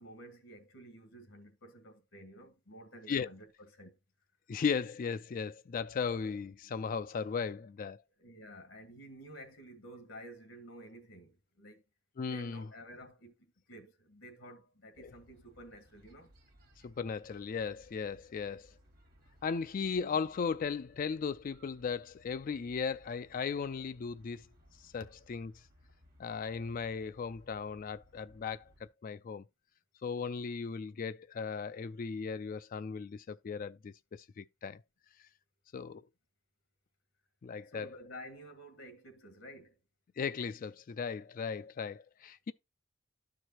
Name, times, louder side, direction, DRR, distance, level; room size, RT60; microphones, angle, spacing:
voice 1, 0.0-4.0 8.2-11.8 12.3-16.3 37.7-39.8, equal, 85° left, 1.6 m, -51 dB
voice 2, 4.5-8.0 12.2-12.7 15.0-15.1 16.8-18.7 19.4-24.5 24.8-25.0 25.3-25.5 26.2-28.7 29.0-29.4 30.0-34.8 35.7-36.0 37.4-37.9 40.2-42.5, left 5 dB, 45° left, 0.3 m, -36 dB
sound 1, 14.9-28.9, equal, 50° right, 2.0 m, -63 dB
12.0 x 4.7 x 2.9 m
head